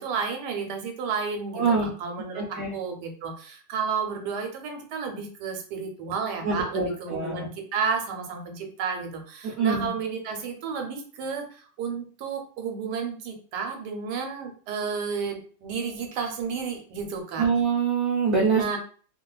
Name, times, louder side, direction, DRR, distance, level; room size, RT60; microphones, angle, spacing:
voice 1, 0.0-17.5 18.5-18.8, right 5 dB, 80° right, 4 dB, 1.2 m, -32 dB
voice 2, 1.5-1.9 2.3-2.8 6.4-7.5 9.4-9.9 17.4-18.8, right 5 dB, 65° right, -4 dB, 0.9 m, -25 dB
2.7 x 2.4 x 2.3 m, 0.42 s
omnidirectional pair, 1.8 m